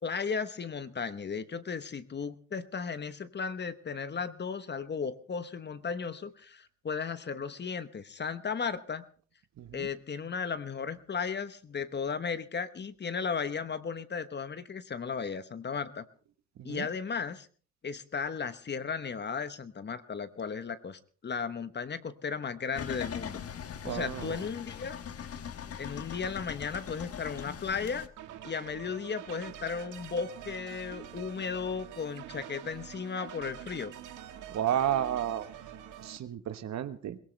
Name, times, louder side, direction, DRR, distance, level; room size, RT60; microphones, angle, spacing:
voice 1, 0.0-9.0 9.7-16.1 16.6-17.5 17.8-23.4 23.8-25.0 25.8-28.1 28.4-33.9, left 5 dB, 35° left, 12 dB, 1.2 m, -35 dB
voice 2, 9.6-9.9 16.6-16.9 23.8-24.5 34.5-35.5 36.0-37.2, right 10 dB, 65° right, 11 dB, 1.3 m, -32 dB
sound 1, 22.7-28.1, left 8 dB, 50° left, 1.3 m, -41 dB
sound 2, 28.2-36.2, right 10 dB, 80° right, 1.8 m, -46 dB
22.0 x 17.5 x 3.4 m, 0.43 s
cardioid pair, 90°, 30 cm